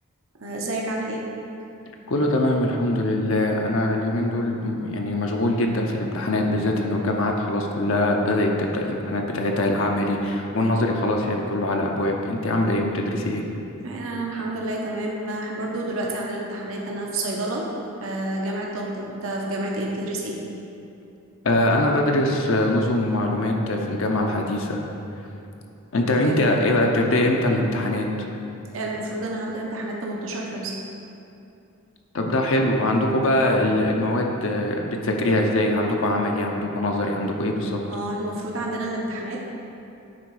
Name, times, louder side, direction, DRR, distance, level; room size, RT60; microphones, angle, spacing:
voice 1, 0.4-1.3 13.8-17.7 18.0-20.4 26.1-26.6 28.7-30.7 37.9-39.4, right 1 dB, 65° right, -2 dB, 0.9 m, -29 dB
voice 2, 2.1-13.4 21.4-24.8 25.9-28.1 32.1-37.8, left 1 dB, 65° left, 1 dB, 0.6 m, -22 dB
9.1 x 3.7 x 4.7 m, 2.7 s
head